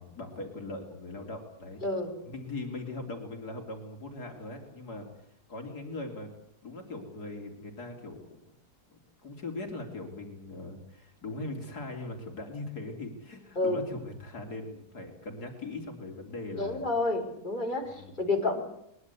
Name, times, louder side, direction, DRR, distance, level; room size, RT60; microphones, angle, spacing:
voice 1, 0.0-1.8 2.2-6.3 6.6-8.4 9.2-16.9 17.8-18.2, left 2 dB, 70° left, 4 dB, 3.6 m, -40 dB
voice 2, 1.8-2.1 13.6-13.8 16.6-18.6, left 2 dB, 30° left, 3 dB, 4.4 m, -29 dB
22.0 x 21.0 x 8.3 m, 0.74 s
omnidirectional pair, 1.7 m